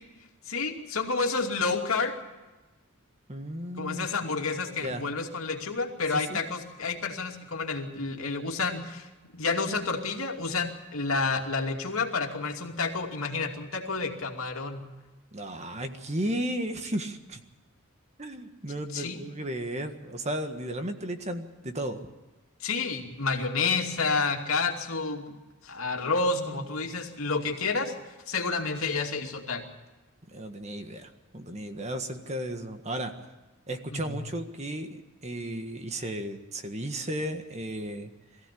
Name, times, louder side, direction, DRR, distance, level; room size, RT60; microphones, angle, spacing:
voice 1, 0.5-2.1 3.8-14.8 18.9-19.2 22.6-25.4 25.6-27.9 28.3-29.7 33.9-34.2, left 4 dB, 75° left, 2 dB, 2.6 m, -30 dB
voice 2, 3.3-4.1 4.8-5.0 6.1-6.4 15.3-17.4 18.2-22.0 26.0-26.1 26.4-26.9 30.3-33.1 33.7-38.1, right 1 dB, 30° right, 6 dB, 1.6 m, -34 dB
22.0 x 15.5 x 8.5 m, 1.2 s
head